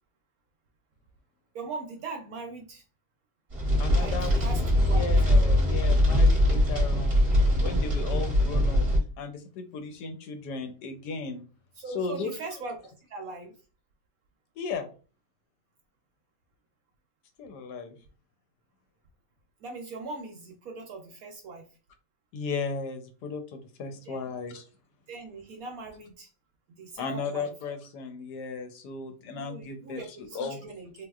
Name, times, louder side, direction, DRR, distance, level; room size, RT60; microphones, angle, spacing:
voice 1, 1.5-2.8 4.0-5.0 11.8-12.8 13.1-13.5 19.6-21.7 24.1-24.2 25.1-26.3 26.7-27.5 29.3-31.1, right 3 dB, 70° right, 3 dB, 0.9 m, -40 dB
sound 1, 3.5-9.0, left 1 dB, 30° right, 0.6 m, -22 dB
voice 2, 3.8-4.5 4.8-7.3 7.6-8.9 9.2-11.5 11.9-12.3 14.6-14.9 17.4-18.0 22.3-24.6 27.0-30.6, left 4 dB, 75° left, 7 dB, 1.1 m, -35 dB
3.5 x 2.7 x 2.3 m, 0.35 s
omnidirectional pair, 1.9 m